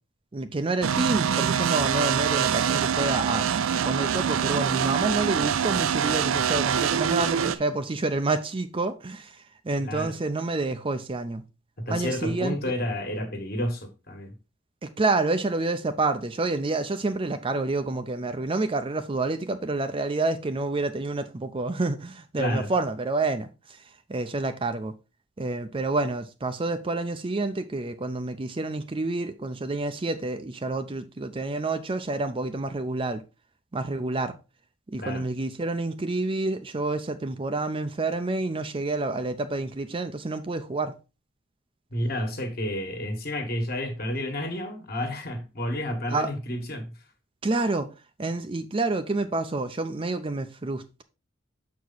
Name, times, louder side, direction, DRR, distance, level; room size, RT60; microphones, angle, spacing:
voice 1, 0.3-11.4 11.9-12.6 14.8-23.8 24.1-24.9 25.4-33.2 33.7-34.4 34.9-41.0 46.1-46.3 47.4-47.9 48.2-51.0, right 2 dB, 25° right, 0.5 m, -28 dB
sound 1, 0.8-7.6, right 8 dB, 80° right, 0.4 m, -25 dB
voice 2, 9.8-10.1 11.8-14.3 22.4-22.7 35.0-35.2 41.9-46.9, left 1 dB, 50° left, 1.6 m, -30 dB
6.9 x 4.8 x 3.9 m
head